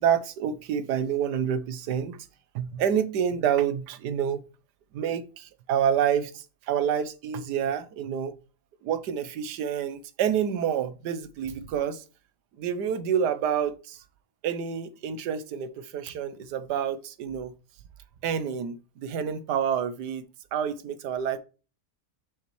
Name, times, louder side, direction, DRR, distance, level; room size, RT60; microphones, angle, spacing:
voice 1, 0.0-2.2 2.5-4.4 4.9-8.4 8.8-12.0 12.6-14.0 14.4-17.5 18.2-20.3 20.5-21.4, right 8 dB, 85° right, 1.4 m, -28 dB
6.9 x 6.1 x 3.1 m
omnidirectional pair, 1.7 m